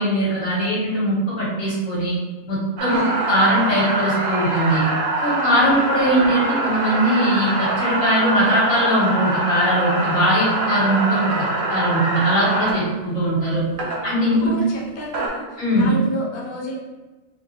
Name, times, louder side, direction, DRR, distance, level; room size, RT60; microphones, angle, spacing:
voice 1, 0.0-2.1 2.5-4.8 5.2-11.3 11.7-13.6 14.0-14.5 15.6-15.9, equal, 90° left, -7 dB, 2.1 m, -20 dB
sound 1, 2.8-12.7 13.8-14.0 14.9-15.3, right 2 dB, 80° right, 1.3 m, -23 dB
voice 2, 13.8-16.8, equal, 45° left, -3 dB, 0.9 m, -31 dB
4.0 x 3.4 x 3.2 m, 1.3 s
omnidirectional pair, 1.4 m